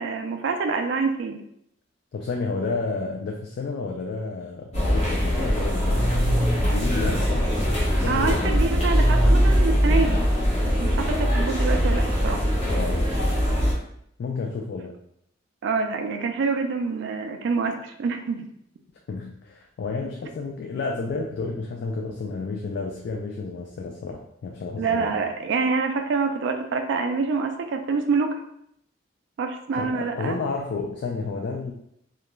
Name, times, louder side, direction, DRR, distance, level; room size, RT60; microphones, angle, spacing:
voice 1, 0.0-1.4 8.1-10.2 10.7-12.4 15.6-18.5 24.8-28.4 29.4-30.4, right 4 dB, 65° right, 5 dB, 0.3 m, -26 dB
voice 2, 2.1-7.5 7.8-8.6 12.7-13.1 14.2-15.0 19.1-25.2 29.7-31.7, left 4 dB, 60° left, 1 dB, 0.3 m, -31 dB
sound 1, 4.7-13.7, equal, 35° left, 0.9 m, -21 dB
2.4 x 2.2 x 3.0 m, 0.73 s
head